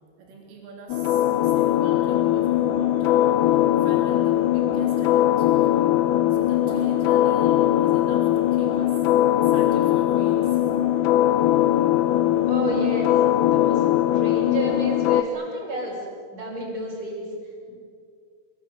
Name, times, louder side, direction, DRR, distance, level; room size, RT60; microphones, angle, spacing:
voice 1, 0.2-5.7 6.3-9.0 9.4-10.6, right 4 dB, 80° right, -1 dB, 5.9 m, -42 dB
sound 1, 0.9-15.2, left 12 dB, 85° left, 3.7 m, -20 dB
voice 2, 12.5-13.1 13.4-13.8 14.1-16.0 16.3-17.2, right 2 dB, 30° right, -7 dB, 7.1 m, -31 dB
28.5 x 24.0 x 8.1 m, 2.2 s
omnidirectional pair, 5.7 m